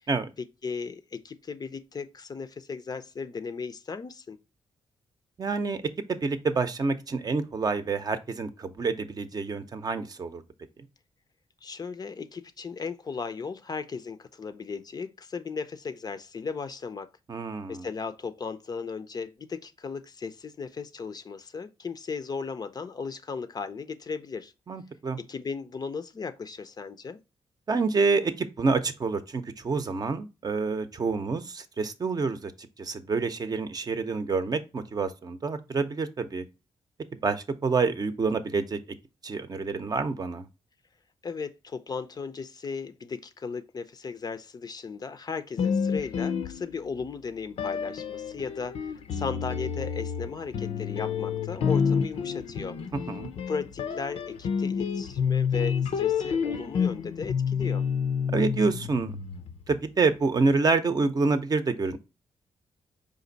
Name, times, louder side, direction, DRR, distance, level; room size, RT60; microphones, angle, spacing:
voice 1, 0.4-4.4 11.6-17.1 17.7-24.5 25.2-27.2 41.2-52.8 53.5-57.8, left 5 dB, 40° left, 0.5 m, -36 dB
voice 2, 5.4-5.8 6.1-10.4 17.3-17.9 24.7-25.2 27.7-32.5 32.8-36.4 37.2-38.8 39.2-40.5 53.1-53.3 58.3-59.2 59.7-62.0, right 4 dB, 40° right, 0.6 m, -27 dB
sound 1, 45.6-47.0 47.6-59.8, left 6 dB, 80° left, 0.6 m, -29 dB
5.1 x 2.5 x 3.9 m
cardioid pair, 90°, 10 cm